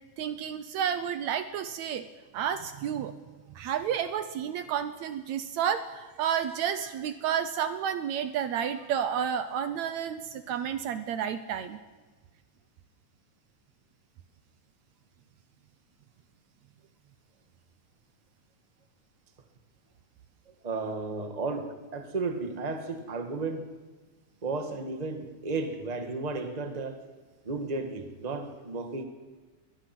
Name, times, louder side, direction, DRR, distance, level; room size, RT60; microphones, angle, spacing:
voice 1, 0.2-2.1 2.3-3.2 3.5-11.8, right 8 dB, 70° right, 11 dB, 1.9 m, -31 dB
voice 2, 20.6-23.7 24.4-27.0 27.4-29.0, right 3 dB, 20° right, 6 dB, 1.3 m, -33 dB
23.0 x 21.5 x 6.1 m, 1.3 s
omnidirectional pair, 3.6 m